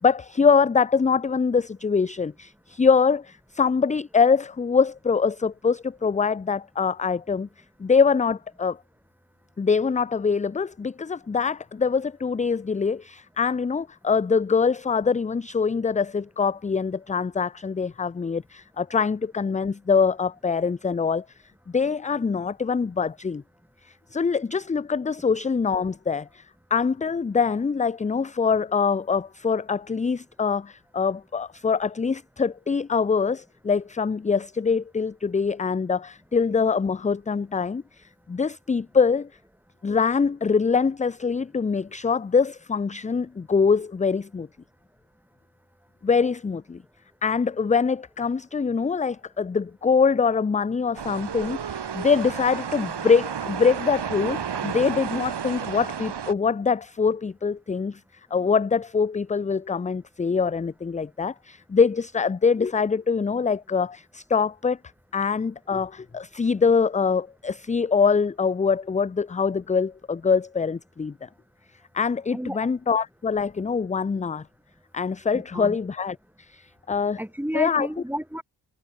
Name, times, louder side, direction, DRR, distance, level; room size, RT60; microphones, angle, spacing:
voice 1, 0.0-7.5 7.8-8.8 9.6-21.2 21.7-23.4 23.8-26.4 26.7-39.3 39.8-44.5 46.0-46.8 47.2-58.0 58.3-64.8 65.1-71.3 71.9-74.4 74.9-77.2 77.5-77.9, left 5 dB, 15° left, 0.5 m, -24 dB
sound 1, 51.0-56.3, right 7 dB, 65° right, 2.9 m, -32 dB
voice 2, 72.3-72.7 75.3-75.8 77.2-78.4, equal, 5° right, 6.7 m, -32 dB
supercardioid pair, 50°, 44 cm